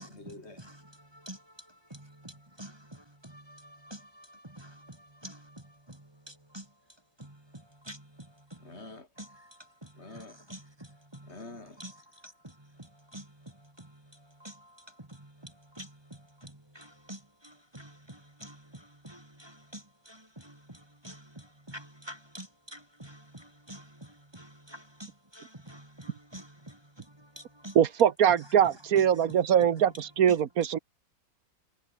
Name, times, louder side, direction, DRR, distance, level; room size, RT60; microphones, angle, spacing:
voice 1, 0.0-0.7 1.9-2.0 8.6-9.1 9.9-10.4 11.2-12.2, left 2 dB, 35° left, 5.2 m, -48 dB
voice 2, 0.6-6.7 7.2-8.7 9.2-10.2 10.5-11.3 11.8-11.9 12.2-27.8, right 1 dB, 15° right, 2.2 m, -49 dB
voice 3, 27.7-30.8, right 9 dB, 55° right, 1.5 m, -23 dB
omnidirectional pair, 1.9 m